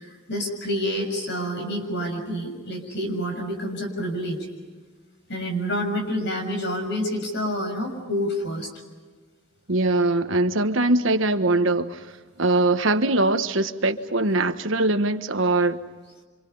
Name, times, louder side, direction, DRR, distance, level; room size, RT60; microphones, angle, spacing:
voice 1, 0.0-4.5 5.3-8.7, equal, 55° left, 6.8 m, -28 dB
voice 2, 9.7-12.0 12.4-15.8, right 2 dB, 70° right, 1.3 m, -22 dB
28.5 x 26.5 x 5.5 m
head